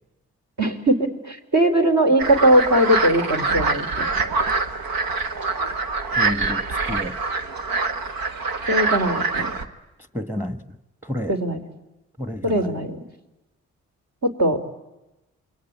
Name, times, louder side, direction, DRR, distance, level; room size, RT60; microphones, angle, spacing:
voice 1, 0.6-4.1 8.7-9.5 11.3-11.6 12.4-13.0 14.2-14.6, right 1 dB, 50° right, 3.8 m, -20 dB
sound 1, 2.2-9.7, right 4 dB, 75° right, 1.5 m, -25 dB
voice 2, 6.2-7.2 10.1-10.6 11.1-11.4 12.2-12.7, left 1 dB, 5° right, 1.5 m, -30 dB
28.0 x 22.0 x 8.9 m
hypercardioid pair, 40°, 36 cm